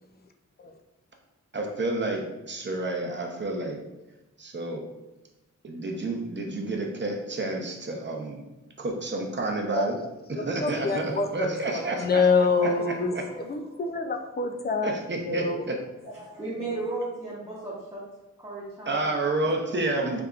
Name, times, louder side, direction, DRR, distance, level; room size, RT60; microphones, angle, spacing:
voice 1, 1.5-3.8 4.4-4.8 5.6-8.4 8.8-10.0 10.3-12.7 13.1-13.2 14.8-15.8 18.9-20.2, right 2 dB, 35° right, 1 dB, 0.7 m, -30 dB
sound 1, 10.4-16.4, left 2 dB, 55° left, 0.9 m, -47 dB
voice 2, 10.6-11.5 11.7-15.0 15.3-15.7, left 4 dB, 30° left, 5 dB, 0.4 m, -26 dB
voice 3, 16.0-18.0 18.4-19.2, right 2 dB, 10° right, -9 dB, 1.0 m, -35 dB
5.0 x 3.4 x 2.4 m, 0.99 s
wide cardioid pair, 115°, 31 cm